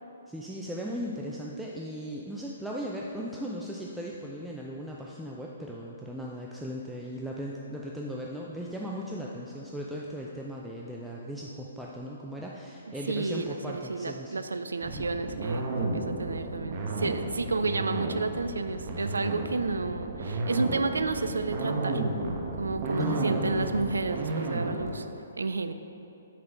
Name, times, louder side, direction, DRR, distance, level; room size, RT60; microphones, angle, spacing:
voice 1, 0.3-14.4 14.9-15.1 23.0-24.0, equal, 5° right, -3 dB, 0.4 m, -37 dB
voice 2, 13.1-22.0 22.6-25.1 25.4-25.7, right 3 dB, 75° right, 10 dB, 0.3 m, -31 dB
sound 1, 14.8-24.9, right 2 dB, 35° right, 0.9 m, -32 dB
6.0 x 5.3 x 4.5 m, 2.8 s
figure-of-eight pair, 125°, 0 cm